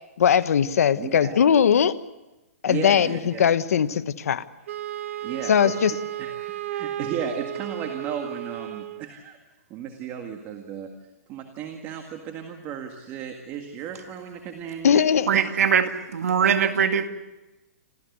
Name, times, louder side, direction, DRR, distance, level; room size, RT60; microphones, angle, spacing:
voice 1, 0.2-1.9 2.6-4.4 5.5-5.9 14.8-15.3, left 8 dB, 80° left, 1.1 m, -20 dB
voice 2, 1.0-1.4 2.7-3.6 5.2-5.7 6.2-9.4 9.7-10.9 11.3-15.6 16.4-16.7, right 7 dB, 25° right, 1.9 m, -35 dB
Wind instrument woodwind instrument, 4.7-9.1, right 12 dB, 60° right, 1.1 m, -33 dB
voice 3, 15.3-17.1, right 7 dB, 80° right, 2.1 m, -21 dB
27.5 x 15.5 x 8.1 m
hypercardioid pair, 160°, 8 cm